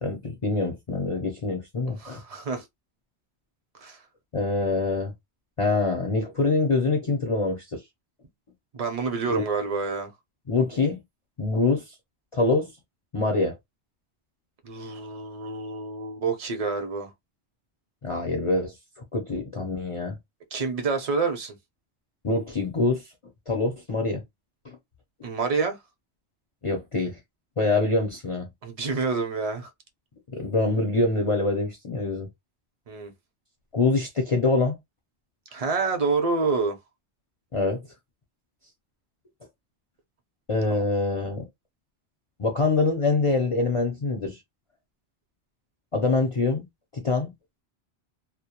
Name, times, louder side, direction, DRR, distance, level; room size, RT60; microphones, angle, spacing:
voice 1, 0.0-2.2 4.3-5.1 5.6-7.8 9.3-9.5 10.5-11.0 11.4-12.0 12.3-12.7 13.1-13.6 18.0-18.7 19.1-20.2 22.2-23.0 23.5-24.2 24.6-24.8 26.6-27.2 27.6-28.5 30.3-32.3 33.7-34.8 37.5-37.8 40.5-41.5 42.4-44.4 45.9-46.6 46.9-47.3, left 3 dB, 40° left, 0.5 m, -25 dB
voice 2, 2.0-2.6 3.8-4.0 8.7-10.1 14.6-17.1 20.5-21.6 25.2-25.8 28.6-29.7 32.9-33.1 35.5-36.8 40.7-40.8, right 4 dB, 40° right, 0.6 m, -28 dB
2.1 x 2.1 x 2.8 m
omnidirectional pair, 1.1 m